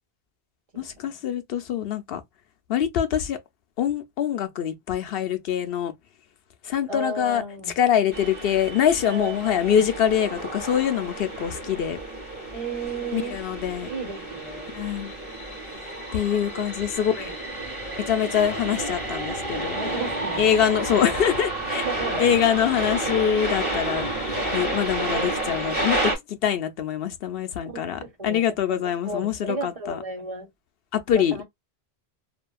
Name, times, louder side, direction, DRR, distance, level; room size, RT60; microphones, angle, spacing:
voice 1, 0.8-2.2 2.7-3.4 3.8-5.9 6.6-7.4 7.8-12.0 13.1-13.9 14.7-15.1 16.1-17.3 18.0-19.8 20.4-21.9 22.2-24.1 24.5-30.0 30.9-31.5, left 9 dB, 70° left, 0.8 m, -24 dB
voice 2, 6.9-7.7 9.0-9.8 12.5-13.3 13.9-14.7 16.3-16.7 17.0-17.3 19.7-20.5 21.8-22.3 27.7-28.5 28.8-30.5 31.1-31.5, right 2 dB, 35° right, 1.3 m, -34 dB
sound 1, 8.1-26.1, right 1 dB, 10° right, 1.4 m, -30 dB
2.7 x 2.5 x 2.2 m
omnidirectional pair, 1.1 m